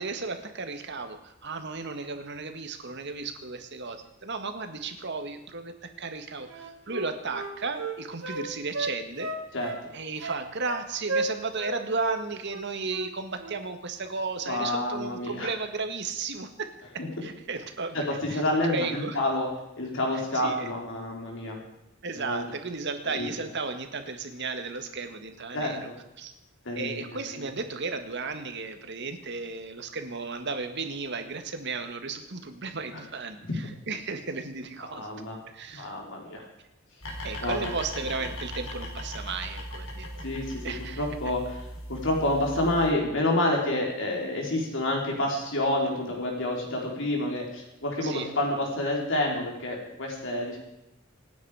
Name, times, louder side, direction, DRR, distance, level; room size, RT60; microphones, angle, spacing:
voice 1, 0.0-9.3 9.9-18.0 18.3-18.4 18.7-19.2 20.3-20.7 22.0-25.9 26.2-26.3 26.8-35.1 35.5-35.9 37.2-40.3 40.6-41.1 48.0-48.3, right 4 dB, 60° right, 7 dB, 1.8 m, -34 dB
Wind instrument woodwind instrument, 6.5-8.4 8.7-9.8 10.2-10.8 11.1-11.7 12.0-12.2 12.5-13.1 13.4-13.6, right 2 dB, 75° right, 2.6 m, -33 dB
voice 2, 14.5-15.5 17.0-17.1 17.9-19.5 19.8-21.6 22.1-22.4 23.1-23.3 25.5-25.9 26.6-27.4 34.8-35.4 35.7-36.4 37.4-37.7 40.2-40.6 41.0-41.6 41.9-50.6, left 1 dB, 65° left, 0 dB, 3.8 m, -28 dB
sound 1, 37.0-42.9, equal, 85° left, 4.3 m, -38 dB
26.5 x 9.5 x 4.9 m, 0.92 s
head